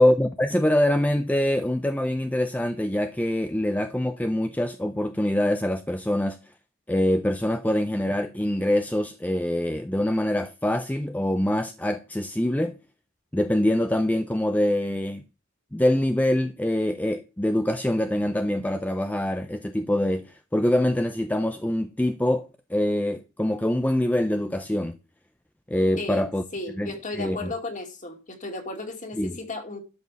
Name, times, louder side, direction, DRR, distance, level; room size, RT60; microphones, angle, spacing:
voice 1, 0.0-6.5 6.9-12.8 13.3-15.2 15.7-25.0 25.7-26.4 26.8-27.5 29.2-29.4, left 1 dB, 5° left, 0.5 m, -24 dB
voice 2, 26.5-29.8, left 2 dB, 35° left, 2.4 m, -34 dB
12.0 x 5.3 x 6.9 m
head